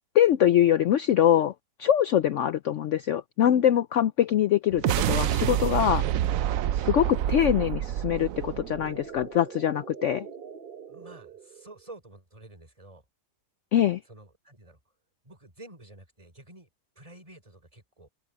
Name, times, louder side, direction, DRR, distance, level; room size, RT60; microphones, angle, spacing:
voice 1, 0.1-1.5 1.8-6.0 6.7-10.3 13.7-14.0, left 10 dB, 75° left, 0.6 m, -23 dB
sound 1, 4.7-9.2, right 12 dB, 70° right, 0.8 m, -27 dB
sound 2, 7.7-11.9, right 6 dB, 40° right, 0.9 m, -44 dB
voice 2, 10.9-13.0 14.0-14.8 15.2-16.7 17.0-18.1, right 2 dB, 20° right, 4.0 m, -49 dB
omnidirectional pair, 1.8 m